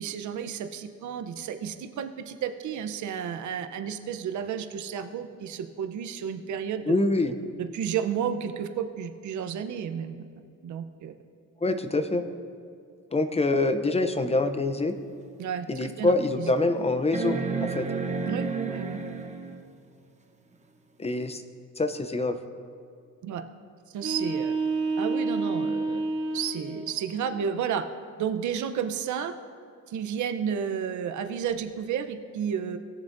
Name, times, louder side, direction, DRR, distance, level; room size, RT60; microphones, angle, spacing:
voice 1, 0.0-6.9 7.6-10.2 10.6-11.1 15.4-16.5 18.3-19.0 23.2-23.4 23.9-24.5 25.0-26.0 26.3-27.8 28.2-29.3 29.9-32.8, right 8 dB, 75° right, 8 dB, 0.7 m, -32 dB
voice 2, 6.9-7.3 11.6-12.2 13.1-14.9 15.7-17.9 21.0-21.4 21.8-22.4, left 2 dB, 20° left, 9 dB, 0.6 m, -25 dB
sound 1, 15.0-15.1 15.7-15.8 17.1-19.6 21.3-21.4, right 4 dB, 25° right, 1.0 m, -31 dB
sound 2, 23.9-26.9, right 3 dB, 55° right, 2.8 m, -29 dB
19.0 x 7.1 x 2.6 m, 2.3 s
cardioid pair, 90°, 30 cm